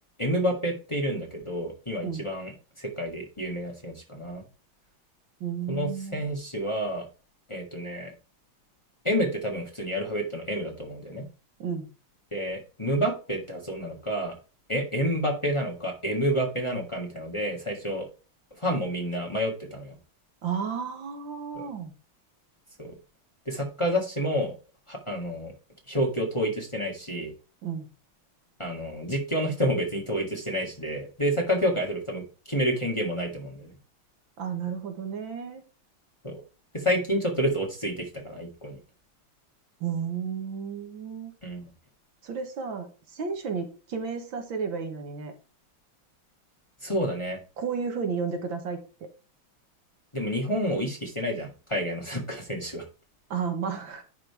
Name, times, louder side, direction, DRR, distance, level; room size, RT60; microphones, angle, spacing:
voice 1, 0.2-2.5 2.8-4.4 5.7-7.1 7.5-8.1 9.0-11.3 12.3-14.4 14.7-18.1 18.6-19.9 21.5-21.6 22.8-22.9 23.4-24.5 24.9-25.5 25.9-27.3 28.6-33.7 36.2-36.4 36.7-38.8 41.4-41.7 46.8-47.4 50.1-52.8, equal, 15° left, 0 dB, 1.7 m, -29 dB
voice 2, 5.4-6.2 11.6-11.9 20.4-21.9 27.6-27.9 34.4-35.6 39.8-41.3 42.2-45.3 47.6-49.1 53.3-54.0, right 6 dB, 70° right, 6 dB, 2.0 m, -32 dB
10.5 x 3.9 x 4.7 m, 0.34 s
omnidirectional pair, 2.3 m